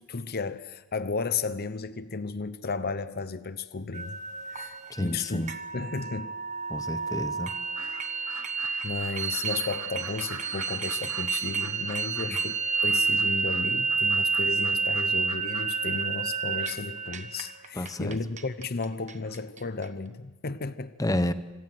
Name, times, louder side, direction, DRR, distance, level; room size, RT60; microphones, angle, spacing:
voice 1, 0.0-4.2 4.5-5.5 5.7-6.3 8.8-21.0, left 4 dB, 45° left, 0.8 m, -34 dB
sound 1, 3.9-19.8, right 4 dB, 35° right, 1.3 m, -30 dB
voice 2, 4.9-5.5 6.7-7.5 17.8-18.2 21.0-21.3, left 1 dB, 15° left, 0.9 m, -30 dB
sound 2, 7.8-16.1 16.5-18.1 19.2-19.4, right 6 dB, 75° right, 1.5 m, -46 dB
26.0 x 17.0 x 7.7 m
head